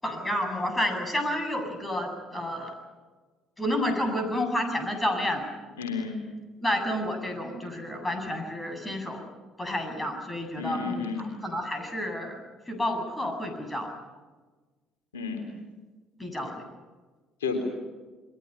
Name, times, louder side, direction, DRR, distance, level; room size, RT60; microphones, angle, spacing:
voice 1, 0.0-2.7 3.6-5.4 6.6-9.3 9.6-12.4 12.7-13.9 16.2-16.6, left 1 dB, 15° left, 4 dB, 7.9 m, -30 dB
voice 2, 5.8-6.2 10.6-11.3 15.1-15.4 17.4-17.7, left 5 dB, 75° left, 4 dB, 3.4 m, -31 dB
29.5 x 22.5 x 5.7 m, 1.3 s
figure-of-eight pair, 50°, 0 cm